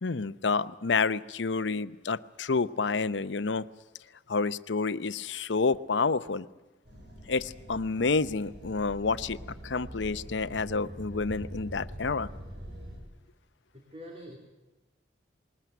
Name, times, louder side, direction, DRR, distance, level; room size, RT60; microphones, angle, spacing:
voice 1, 0.0-3.7 4.3-6.5 7.3-9.4 9.6-12.3, left 4 dB, 80° left, 15 dB, 0.7 m, -29 dB
sound 1, 6.8-13.0, equal, 65° right, 6.6 m, -44 dB
voice 2, 13.7-14.4, equal, 35° right, 2 dB, 3.0 m, -45 dB
20.5 x 19.5 x 9.2 m, 1.1 s
head